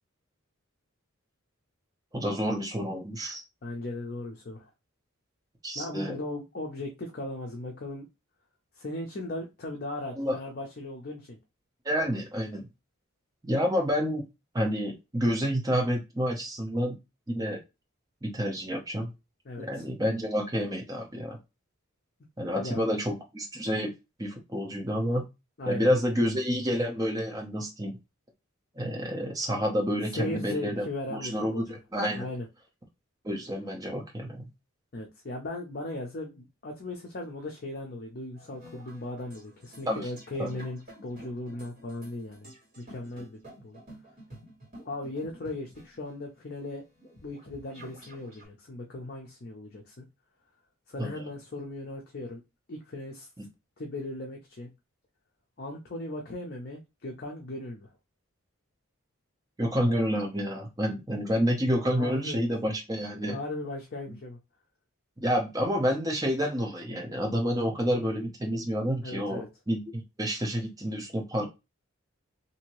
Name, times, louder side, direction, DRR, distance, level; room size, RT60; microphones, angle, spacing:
voice 1, 2.1-3.4 5.6-6.2 10.2-10.4 11.8-12.7 13.4-14.2 14.5-17.0 17.3-17.6 18.2-19.1 19.6-21.4 22.4-23.9 24.2-25.2 25.7-28.0 28.7-32.3 33.2-34.5 39.9-40.1 40.4-40.5 51.0-51.1 53.4-53.5 59.6-63.4 65.2-71.4, equal, 15° right, 0.6 m, -29 dB
voice 2, 3.6-4.7 5.8-8.1 8.7-11.4 19.5-19.9 22.5-22.8 25.6-25.9 30.1-31.8 32.1-32.5 34.9-43.8 44.8-46.8 47.2-50.1 50.9-52.4 52.7-53.3 53.8-54.7 55.6-57.9 62.0-62.4 63.3-64.4 69.0-69.5, left 2 dB, 45° left, 0.5 m, -37 dB
sound 1, 38.3-48.5, right 1 dB, 35° right, 1.8 m, -51 dB
2.7 x 2.7 x 3.0 m
head